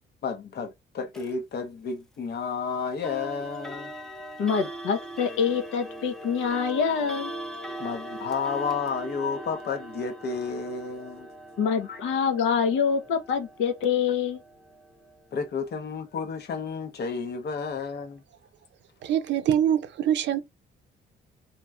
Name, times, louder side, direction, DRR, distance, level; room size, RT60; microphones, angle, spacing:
voice 1, 0.2-3.9 7.8-11.3 11.9-12.0 15.3-18.2, left 5 dB, 55° left, 0.8 m, -31 dB
sound 1, 1.1-1.3 3.0-15.9, right 1 dB, ahead, 0.5 m, -41 dB
voice 2, 4.4-7.3 11.6-14.4, left 6 dB, 85° left, 0.9 m, -25 dB
voice 3, 19.0-20.4, right 10 dB, 65° right, 0.5 m, -24 dB
2.9 x 2.9 x 2.2 m
cardioid pair, 90°, 20 cm